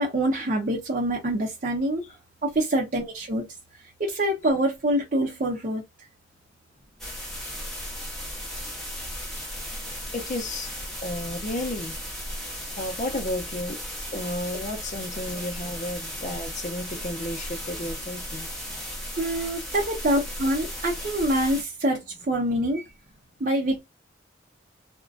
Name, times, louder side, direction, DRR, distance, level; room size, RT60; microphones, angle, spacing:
voice 1, 0.0-2.0 2.4-3.5 4.0-5.8 19.2-22.9 23.4-23.8, right 1 dB, 45° right, 0.6 m, -25 dB
sound 1, 7.0-21.6, equal, ahead, 0.9 m, -36 dB
voice 2, 10.1-10.7 11.0-12.0 12.4-13.8 14.1-18.5, left 1 dB, 40° left, 0.5 m, -33 dB
2.5 x 2.1 x 2.3 m
head